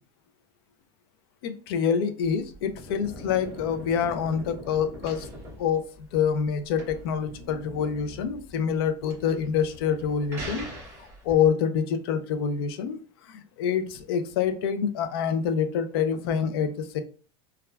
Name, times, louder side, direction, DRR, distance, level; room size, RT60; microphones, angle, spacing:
voice 1, 1.4-5.3 5.6-5.8 6.1-10.7 11.2-17.0, left 7 dB, 85° left, 10 dB, 0.5 m, -26 dB
sound 1, 2.2-11.5, equal, 20° right, 1.2 m, -42 dB
3.1 x 2.3 x 2.2 m, 0.39 s
cardioid pair, 170°, 12 cm